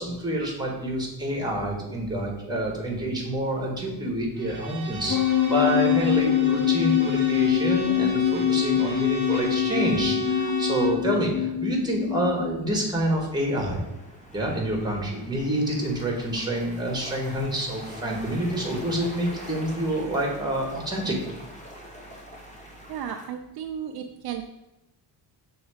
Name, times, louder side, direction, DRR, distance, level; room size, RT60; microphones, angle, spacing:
voice 1, 0.0-5.2 5.5-13.8 14.3-21.2, right 1 dB, 10° right, -1 dB, 1.6 m, -27 dB
Bowed string instrument, 4.4-11.0, right 3 dB, 25° right, 1.5 m, -33 dB
sound 1, 5.1-12.5, left 11 dB, 55° left, 0.5 m, -24 dB
sound 2, 13.4-23.3, equal, 15° left, 1.2 m, -44 dB
voice 2, 22.9-24.4, right 9 dB, 60° right, 5 dB, 0.5 m, -34 dB
6.3 x 3.5 x 4.9 m, 0.93 s
cardioid pair, 135°, 42 cm